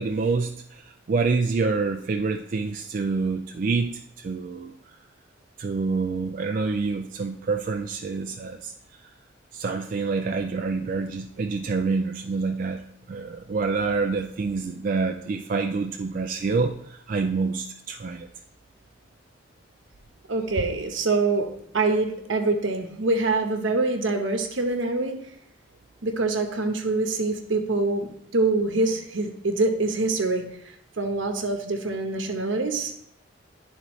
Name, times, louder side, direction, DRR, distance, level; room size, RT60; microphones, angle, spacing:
voice 1, 0.0-4.7 5.6-8.7 9.5-12.8 13.1-18.3, right 4 dB, 45° right, 5 dB, 0.3 m, -27 dB
voice 2, 20.3-25.3 26.0-30.4 31.0-32.9, right 3 dB, 75° right, 5 dB, 0.9 m, -25 dB
11.0 x 4.0 x 3.1 m, 0.73 s
head